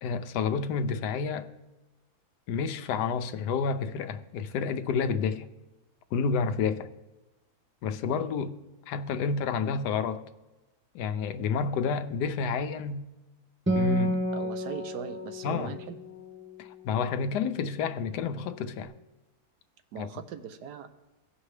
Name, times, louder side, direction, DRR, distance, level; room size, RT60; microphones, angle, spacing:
voice 1, 0.0-1.5 2.5-5.5 6.1-6.9 7.8-8.6 8.9-10.2 10.9-13.0 13.7-14.2 15.4-15.7 16.6-18.9 20.0-20.1, left 5 dB, 85° left, 1.2 m, -29 dB
Acoustic guitar, 13.7-17.4, equal, 10° right, 0.5 m, -31 dB
voice 2, 14.3-16.0 19.9-20.9, right 8 dB, 90° right, 1.3 m, -40 dB
17.0 x 5.9 x 3.2 m
omnidirectional pair, 1.7 m